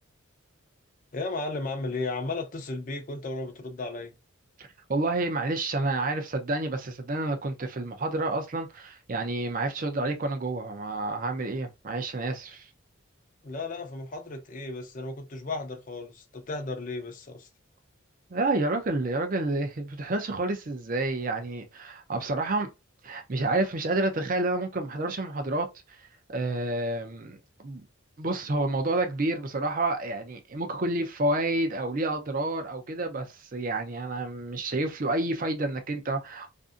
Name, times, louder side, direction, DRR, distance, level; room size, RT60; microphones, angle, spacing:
voice 1, 1.1-4.1 13.4-17.5, left 3 dB, 40° left, 0.5 m, -34 dB
voice 2, 4.6-12.7 18.3-22.7 23.0-26.0 26.3-27.8 28.2-36.5, right 2 dB, 40° right, 0.5 m, -29 dB
2.6 x 2.6 x 2.4 m
head